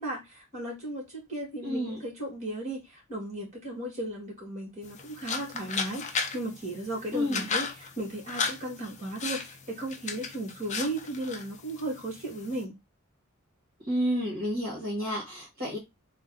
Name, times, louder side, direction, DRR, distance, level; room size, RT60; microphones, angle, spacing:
voice 1, 0.0-12.8, right 1 dB, 35° right, 2.0 m, -36 dB
voice 2, 1.6-2.0 7.1-7.5 13.9-15.8, equal, 50° right, 1.5 m, -30 dB
sound 1, 4.8-12.6, left 5 dB, 35° left, 0.6 m, -36 dB
3.4 x 2.3 x 3.7 m
head